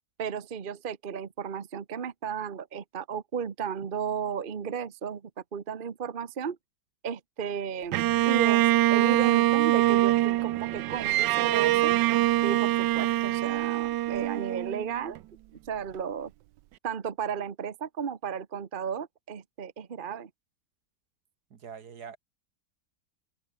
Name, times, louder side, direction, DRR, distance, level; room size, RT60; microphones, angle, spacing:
voice 1, 0.2-6.6 7.0-11.9 12.4-15.2 15.6-16.3 16.8-20.3, right 7 dB, 35° right, 1.1 m, -34 dB
Bowed string instrument, 7.9-15.2, right 15 dB, 90° right, 1.3 m, -24 dB
voice 2, 21.5-22.2, right 7 dB, 65° right, 2.0 m, -43 dB
omnidirectional pair, 1.8 m